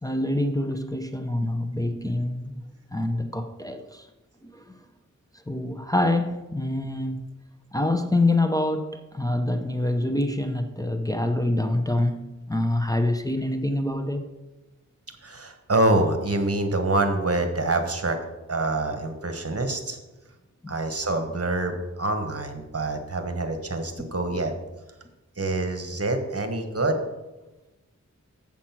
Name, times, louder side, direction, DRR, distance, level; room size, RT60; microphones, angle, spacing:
voice 1, 0.0-2.6 2.9-4.1 4.4-4.6 5.5-7.2 7.7-14.3 24.0-24.1, left 1 dB, 10° left, 0.7 m, -26 dB
voice 2, 15.2-18.2 18.5-20.0 20.7-24.5 25.4-27.0, right 2 dB, 50° right, 1.3 m, -26 dB
7.6 x 7.2 x 5.9 m
wide cardioid pair, 70°, 30 cm